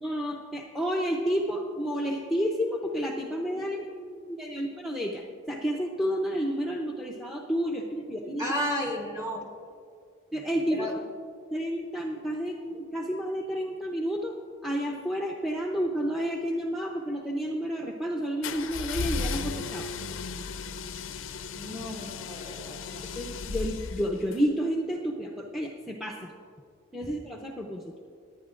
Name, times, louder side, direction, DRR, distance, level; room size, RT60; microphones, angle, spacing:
voice 1, 0.0-3.9 4.3-8.5 10.3-10.9 11.5-14.4 14.6-19.9 23.0-26.3 26.9-27.9, equal, ahead, -1 dB, 0.7 m, -30 dB
voice 2, 3.6-4.2 8.4-9.5 10.7-11.0 20.4-20.6 21.5-23.1 27.0-27.1, equal, 20° right, 0 dB, 1.7 m, -34 dB
sound 1, 18.4-24.4, left 4 dB, 75° left, 0.5 m, -35 dB
27.5 x 9.6 x 2.5 m, 2.2 s
head